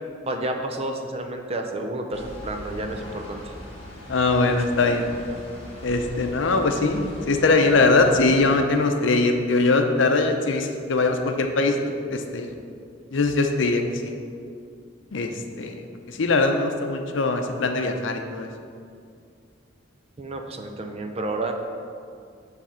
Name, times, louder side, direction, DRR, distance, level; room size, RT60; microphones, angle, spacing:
voice 1, 0.3-3.5 20.2-21.5, right 2 dB, 35° right, 4 dB, 0.5 m, -30 dB
sound 1, 2.1-8.6, equal, 35° left, 1.5 m, -40 dB
voice 2, 4.1-5.1 5.8-11.8 12.1-12.5 13.1-14.1 15.1-18.5, left 3 dB, 80° left, 5 dB, 0.6 m, -22 dB
7.4 x 3.4 x 5.6 m, 2.3 s
head